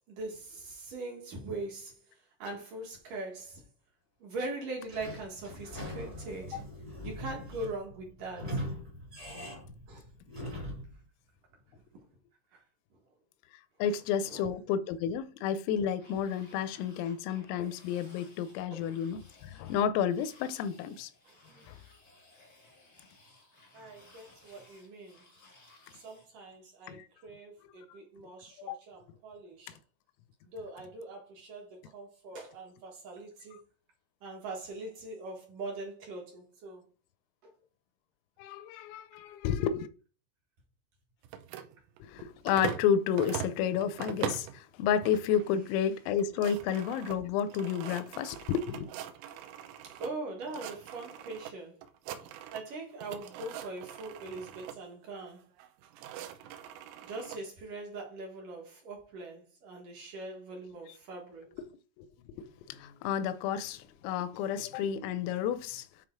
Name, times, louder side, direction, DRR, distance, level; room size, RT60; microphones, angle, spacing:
voice 1, 0.1-3.6 4.2-6.6 7.0-8.6 9.9-10.0 10.4-10.5 11.7-12.0 12.5-12.6 13.9-14.0 14.2-14.5 18.7-18.8 21.2-21.7 23.7-25.2 25.9-29.8 30.4-33.6 34.2-36.9 37.4-37.5 49.8-51.8 52.5-55.5 57.0-61.5, right 2 dB, 60° right, 2.3 m, -42 dB
Sliding door / Squeak, 4.9-11.0, equal, 15° right, 1.1 m, -41 dB
voice 2, 13.8-21.1 21.7-21.8 26.9-27.1 27.7-28.0 28.7-28.8 38.4-39.9 42.0-48.9 61.6-61.7 62.0-65.9, left 8 dB, 85° left, 3.3 m, -31 dB
sound 1, 16.0-26.3, left 2 dB, 45° left, 1.1 m, -59 dB
sound 2, 41.2-42.9 43.2-44.6 45.0-45.5 45.8-45.9 46.1-50.1 50.4-51.5 51.8-52.7 53.0-54.8 55.6-57.4, right 11 dB, 80° right, 3.1 m, -42 dB
9.5 x 3.8 x 4.6 m
omnidirectional pair, 6.0 m